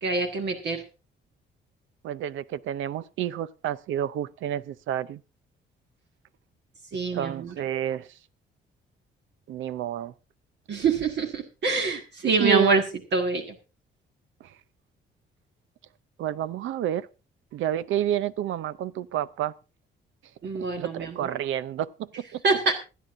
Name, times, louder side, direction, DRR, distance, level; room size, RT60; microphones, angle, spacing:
voice 1, 0.0-0.8 6.9-7.5 10.7-12.8 13.1-13.5 20.4-21.2 22.4-22.7, right 4 dB, 60° right, 1.7 m, -25 dB
voice 2, 2.0-5.2 7.1-8.1 9.5-10.1 12.4-12.8 14.4-14.5 16.2-17.1 17.5-19.5 20.8-22.4, right 11 dB, 80° right, 0.6 m, -29 dB
26.0 x 9.2 x 2.6 m
cardioid pair, 90°, 20 cm